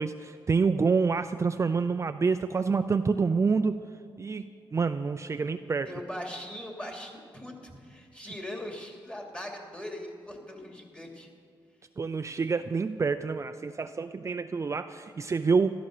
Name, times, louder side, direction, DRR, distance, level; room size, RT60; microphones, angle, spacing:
voice 1, 0.0-3.8 4.2-5.9 12.0-15.8, right 4 dB, 35° right, 8 dB, 0.5 m, -27 dB
voice 2, 5.9-11.3, left 1 dB, 15° left, 1 dB, 2.9 m, -40 dB
14.5 x 12.5 x 6.7 m, 2.3 s
cardioid pair, 90°, 9 cm